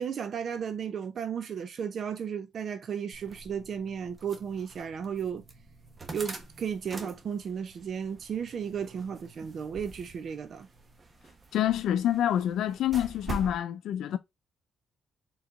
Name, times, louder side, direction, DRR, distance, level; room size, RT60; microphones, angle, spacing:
voice 1, 0.0-5.4 6.1-10.7, right 7 dB, 55° right, 0.4 m, -34 dB
sound 1, 3.1-13.6, right 2 dB, 30° right, 1.0 m, -45 dB
voice 2, 11.5-14.2, left 11 dB, 80° left, 0.4 m, -27 dB
4.3 x 3.8 x 2.5 m
cardioid pair, 90°, 0 cm